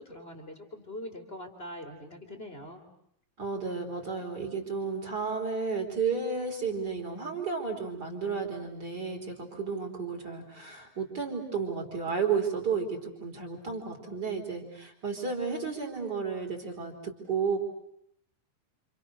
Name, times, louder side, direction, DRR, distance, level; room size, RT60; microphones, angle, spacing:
voice 1, 0.0-2.8, left 1 dB, 15° left, 5 dB, 2.2 m, -43 dB
voice 2, 3.4-17.6, right 5 dB, 20° right, 3 dB, 4.2 m, -32 dB
30.0 x 27.5 x 6.6 m, 0.72 s
omnidirectional pair, 5.8 m